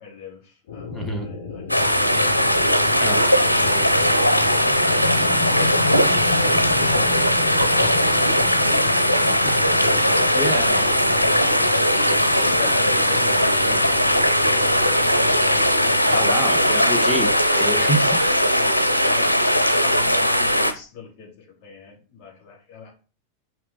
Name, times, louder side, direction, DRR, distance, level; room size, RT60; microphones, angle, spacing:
voice 1, 0.0-3.6 5.0-9.8 10.7-11.7 12.0-15.6 17.9-22.9, left 6 dB, 40° left, -2 dB, 3.3 m, -42 dB
sound 1, 0.7-16.3, left 5 dB, 60° left, 1.5 m, -34 dB
voice 2, 0.9-1.3 3.0-3.2 3.6-3.9 9.4-9.6 10.3-10.8 16.1-18.3, right 1 dB, ahead, 2 dB, 1.5 m, -27 dB
sound 2, 1.7-20.7, equal, 90° right, 0.6 m, -19 dB
sound 3, 4.0-15.0, left 3 dB, 20° left, 4.2 m, -33 dB
6.1 x 5.5 x 4.1 m, 0.35 s
figure-of-eight pair, 90°, 0 cm